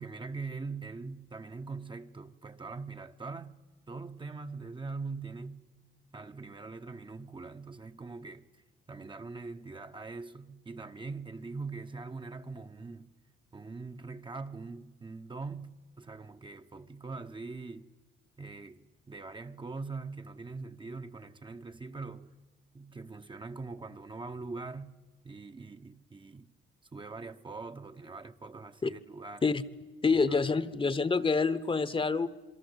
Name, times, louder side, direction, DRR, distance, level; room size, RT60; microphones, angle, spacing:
voice 1, 0.0-3.6 3.9-5.6 6.1-8.5 8.9-13.1 13.5-17.9 18.4-22.3 22.7-24.9 25.2-26.5 26.9-29.5 30.1-30.4, right 4 dB, 25° right, 1.0 m, -42 dB
voice 2, 30.0-32.3, left 4 dB, 25° left, 1.1 m, -27 dB
27.5 x 22.0 x 8.0 m
cardioid pair, 90°, 20 cm